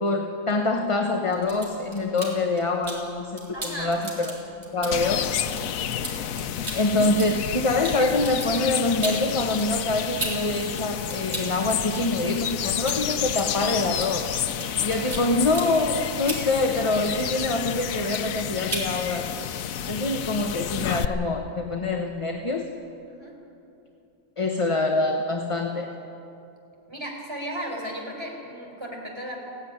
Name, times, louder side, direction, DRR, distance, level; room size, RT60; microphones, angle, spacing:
voice 1, 0.0-4.3 4.7-5.2 6.7-14.3 14.8-19.3 19.9-22.7 24.4-25.9, left 2 dB, 25° left, 4 dB, 0.9 m, -25 dB
sound 1, 1.3-3.0 3.4-10.7 10.9-17.5 17.8-18.4 18.7-18.9, right 1 dB, 55° right, 3.8 m, -36 dB
voice 2, 3.5-4.0 4.8-5.4 23.1-23.3 26.9-29.4, equal, 20° right, -1 dB, 4.4 m, -35 dB
sound 2, 4.9-21.1, left 9 dB, 90° left, 1.1 m, -30 dB
17.0 x 16.5 x 10.0 m, 2.8 s
omnidirectional pair, 1.4 m